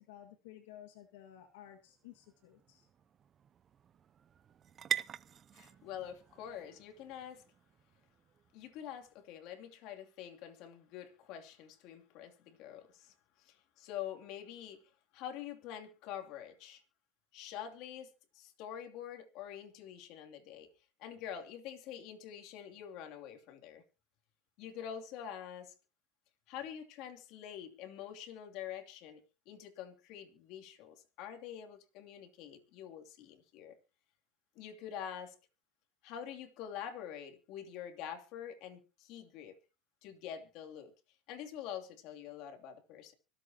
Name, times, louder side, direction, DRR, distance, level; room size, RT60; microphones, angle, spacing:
voice 1, 0.0-2.9, left 11 dB, 80° left, 1.9 m, -54 dB
sound 1, 1.3-9.1, right 8 dB, 30° right, 0.5 m, -45 dB
voice 2, 5.5-7.4 8.5-16.8 17.3-20.7 21.0-23.8 24.6-25.7 26.5-33.8 34.5-35.4 36.0-39.6 40.0-40.9 41.3-43.1, left 9 dB, 55° left, 2.8 m, -46 dB
25.0 x 8.4 x 2.9 m
supercardioid pair, 125°, 0 cm